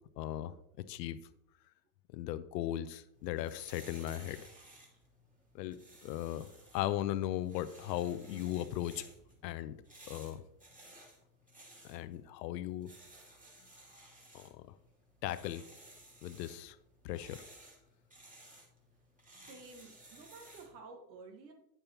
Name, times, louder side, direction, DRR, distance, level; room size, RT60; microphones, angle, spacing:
voice 1, 0.2-0.6 0.9-1.2 2.1-4.4 5.5-9.0 9.4-9.8 10.1-10.4 11.8-12.9 14.3-14.6 15.2-15.6 16.2-16.8 17.0-17.4, left 13 dB, 80° left, 13 dB, 0.7 m, -37 dB
sound 1, 3.1-20.8, right 1 dB, 15° right, 2.5 m, -58 dB
voice 2, 19.2-21.5, right 3 dB, 85° right, 4 dB, 1.6 m, -52 dB
8.9 x 6.9 x 2.9 m, 0.78 s
hypercardioid pair, 95°, 49 cm